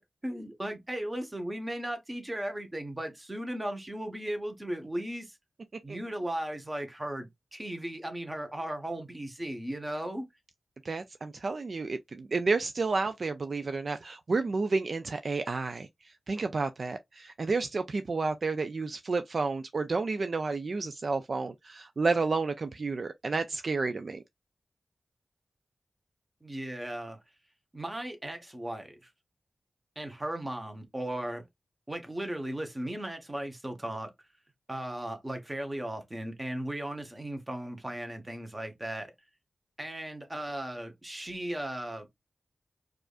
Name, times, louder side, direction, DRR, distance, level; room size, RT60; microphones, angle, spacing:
voice 1, 0.2-5.4 5.8-10.3 26.4-27.2 27.7-29.1 29.9-31.4 31.9-34.1 34.7-39.1 39.8-42.1, right 1 dB, 20° right, 1.1 m, -36 dB
voice 2, 10.8-24.2, right 3 dB, 55° right, 0.3 m, -31 dB
4.7 x 2.4 x 2.4 m
wide cardioid pair, 85°, 0 cm